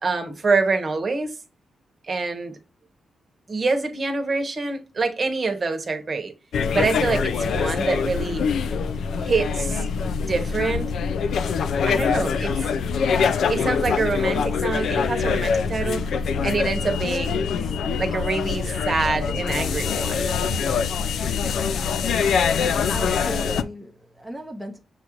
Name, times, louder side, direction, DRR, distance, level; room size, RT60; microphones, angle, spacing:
voice 1, 0.0-1.3 2.1-2.5 3.5-6.3 6.7-8.4 9.2-9.8 10.2-11.0 11.8-12.7 13.5-16.1 16.4-17.4 18.0-20.2, right 4 dB, 40° right, 1.0 m, -25 dB
People Inside Train Ambience, 6.5-23.6, left 6 dB, 80° left, 0.3 m, -24 dB
voice 2, 22.9-24.8, right 1 dB, ahead, 0.7 m, -35 dB
6.3 x 2.5 x 2.9 m
cardioid pair, 110°, 0 cm